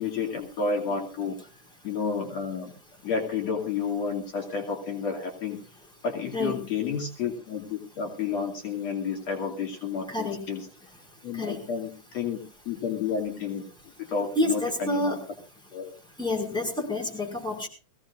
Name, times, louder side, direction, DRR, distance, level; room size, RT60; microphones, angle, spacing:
voice 1, 0.0-1.4 1.8-2.7 3.0-5.6 6.0-10.7 11.2-12.4 12.7-13.7 14.1-15.2 15.7-15.9, left 5 dB, 60° left, 1 dB, 3.5 m, -31 dB
voice 2, 10.1-10.4 11.3-11.6 14.4-15.2 16.2-17.7, left 1 dB, ahead, 0 dB, 5.3 m, -28 dB
22.0 x 16.5 x 2.5 m, 0.35 s
omnidirectional pair, 3.4 m